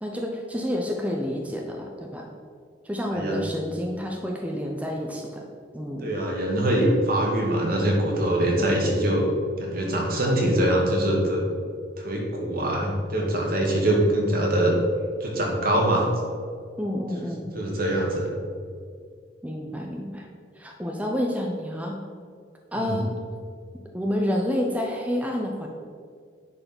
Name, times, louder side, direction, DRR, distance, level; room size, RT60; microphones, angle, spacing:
voice 1, 0.0-2.3 2.8-5.4 5.7-6.1 16.8-17.5 19.4-20.3 20.6-22.0 22.7-23.1 23.9-25.7, equal, 10° right, 0 dB, 0.8 m, -29 dB
voice 2, 6.0-9.3 9.6-11.5 12.0-14.8 15.2-16.1 17.6-18.3 22.8-23.0, right 1 dB, 55° right, -1 dB, 1.9 m, -23 dB
10.0 x 4.9 x 6.0 m, 2.1 s
head